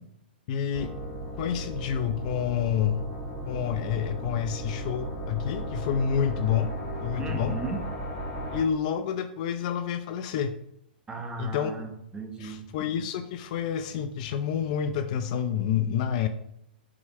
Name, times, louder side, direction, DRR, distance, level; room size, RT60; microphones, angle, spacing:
voice 1, 0.5-0.9 1.4-3.1 3.5-6.7 7.0-7.6 8.5-10.6 11.4-11.9 12.4-16.3, left 8 dB, 45° left, 10 dB, 0.6 m, -28 dB
sound 1, 0.7-8.6, right 1 dB, 30° left, 2.8 m, -36 dB
voice 2, 7.2-7.8 11.1-12.6, right 3 dB, 15° right, 5 dB, 1.3 m, -36 dB
8.7 x 6.3 x 3.3 m, 0.74 s
hypercardioid pair, 120°, 6 cm